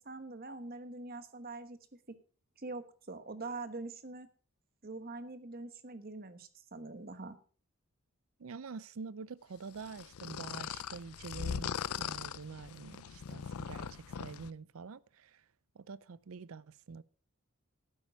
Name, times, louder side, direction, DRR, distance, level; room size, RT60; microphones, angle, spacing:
voice 1, 0.0-1.8 2.1-2.2 2.6-4.3 4.8-7.3, right 3 dB, 45° right, 1.2 m, -44 dB
voice 2, 8.4-15.4 15.7-17.0, right 5 dB, 70° right, 0.5 m, -46 dB
sound 1, 9.9-14.5, left 7 dB, 85° left, 0.5 m, -40 dB
12.0 x 9.2 x 4.6 m
head